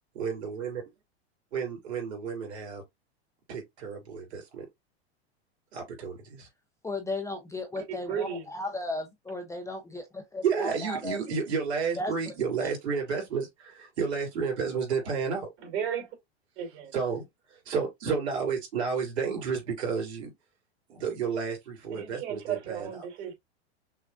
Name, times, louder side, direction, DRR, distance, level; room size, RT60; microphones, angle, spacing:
voice 1, 0.1-0.8 1.5-2.8 3.5-4.7 5.7-6.5 10.4-15.5 16.9-17.2 17.5-20.3 20.9-23.0, right 6 dB, 75° right, 3.2 m, -31 dB
voice 2, 6.8-11.2 12.0-12.1 12.6-12.7, left 2 dB, 10° left, 0.7 m, -35 dB
voice 3, 8.1-8.5 15.6-16.1 16.6-16.9 21.9-23.3, right 8 dB, 50° right, 3.0 m, -34 dB
6.1 x 2.3 x 2.5 m
hypercardioid pair, 120°, 33 cm